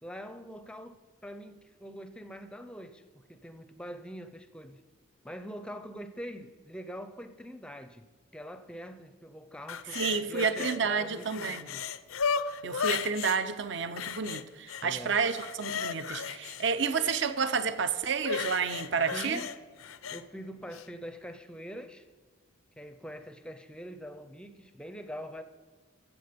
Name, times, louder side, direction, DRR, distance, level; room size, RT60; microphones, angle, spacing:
voice 1, 0.0-4.8 5.2-8.0 8.3-11.8 14.8-15.2 19.1-19.5 20.1-22.1 22.8-25.4, equal, 5° left, 0.5 m, -44 dB
sound 1, 9.7-10.8 11.1-13.4 14.0-14.9 15.2-17.2 18.2-20.2 20.7-20.9, left 6 dB, 85° left, 0.5 m, -35 dB
voice 2, 9.9-11.7 12.6-19.4, right 5 dB, 60° right, 0.6 m, -30 dB
14.5 x 7.4 x 5.2 m
head